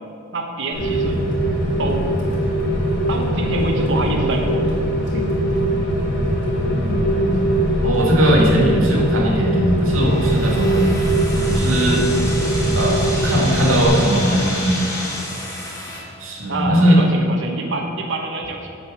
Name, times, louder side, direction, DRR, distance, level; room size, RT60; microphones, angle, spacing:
voice 1, 0.3-1.2 1.8-2.1 3.1-4.7 5.1-5.3 16.5-18.7, right 2 dB, 65° right, 2 dB, 1.0 m, -26 dB
Rain, 0.7-13.9, right 1 dB, 60° left, 2.5 m, -21 dB
voice 2, 6.7-7.4 7.8-10.9 11.3-12.1 12.7-14.8 16.2-17.0, equal, 85° right, -2 dB, 2.0 m, -19 dB
sound 1, 9.9-16.0, left 1 dB, 15° left, 1.9 m, -30 dB
8.1 x 7.8 x 5.9 m, 2.4 s
head